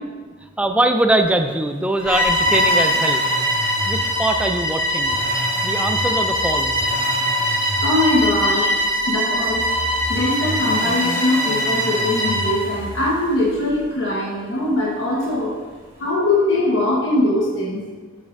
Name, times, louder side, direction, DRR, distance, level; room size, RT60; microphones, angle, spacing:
voice 1, 0.6-3.2 3.9-5.2 5.6-6.8, right 1 dB, 5° right, 5 dB, 0.3 m, -22 dB
Bowed string instrument, 2.0-12.6, equal, 20° left, 1.5 m, -21 dB
Accelerating revving vroom, 2.0-13.9 15.2-15.3, equal, 30° right, 1.3 m, -32 dB
voice 2, 7.4-9.6 10.1-15.5 16.0-17.8, left 1 dB, 70° left, -6 dB, 1.2 m, -21 dB
7.2 x 5.9 x 2.6 m, 1.4 s
head